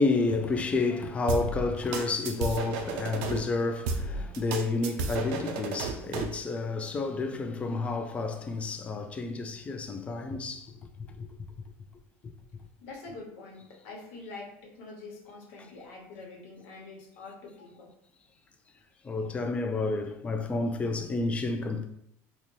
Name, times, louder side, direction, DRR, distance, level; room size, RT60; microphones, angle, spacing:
voice 1, 0.0-10.6 19.1-21.9, left 3 dB, 20° left, 0.3 m, -30 dB
sound 1, 1.3-3.4 3.9-6.4, right 4 dB, 70° right, 0.4 m, -32 dB
voice 2, 12.8-17.9, left 3 dB, 80° left, 1.1 m, -45 dB
3.9 x 2.1 x 3.1 m
cardioid pair, 140°, 7 cm